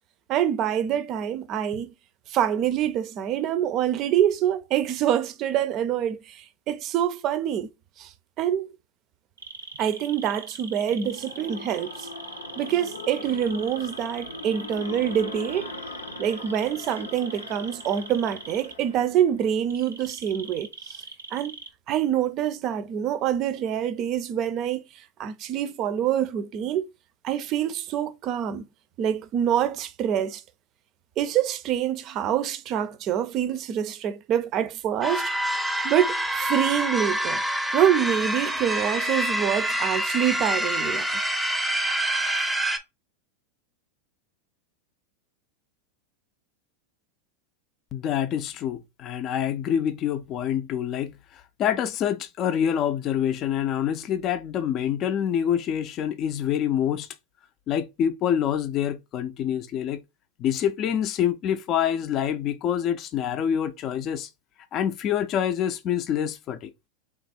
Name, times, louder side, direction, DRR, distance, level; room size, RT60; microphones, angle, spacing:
voice 1, 0.3-1.9 2.3-7.7 8.0-8.7 9.8-12.1 12.6-15.7 16.2-21.0 21.3-21.6 21.9-26.9 27.2-28.7 29.0-30.4 31.2-35.3 35.8-37.4 37.7-41.1, right 10 dB, 45° right, 0.5 m, -26 dB
sound 1, 9.4-18.7 19.7-21.7, right 5 dB, 90° right, 0.6 m, -41 dB
sound 2, 10.8-19.6, left 4 dB, 90° left, 0.6 m, -41 dB
sound 3, 35.0-42.8, right 1 dB, 5° right, 0.6 m, -26 dB
voice 2, 47.9-57.1 57.7-60.0 60.4-64.3 64.7-66.7, left 9 dB, 40° left, 0.4 m, -26 dB
3.4 x 2.5 x 4.1 m
hypercardioid pair, 95°, 0 cm